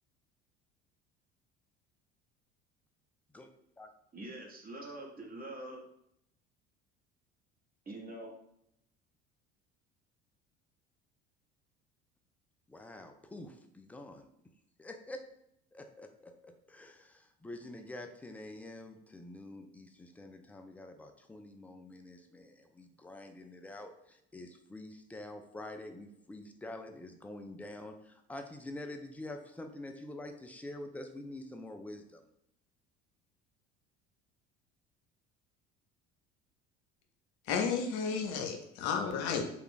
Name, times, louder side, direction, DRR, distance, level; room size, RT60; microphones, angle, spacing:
voice 1, 4.1-5.9 7.9-8.3, right 1 dB, 25° right, 0 dB, 1.0 m, -44 dB
voice 2, 12.7-14.3 14.8-15.2 15.7-32.2, left 1 dB, 5° left, 5 dB, 0.4 m, -47 dB
voice 3, 37.4-39.5, left 6 dB, 60° left, 5 dB, 0.7 m, -32 dB
3.3 x 2.4 x 3.5 m, 0.76 s
hypercardioid pair, 65°, 33 cm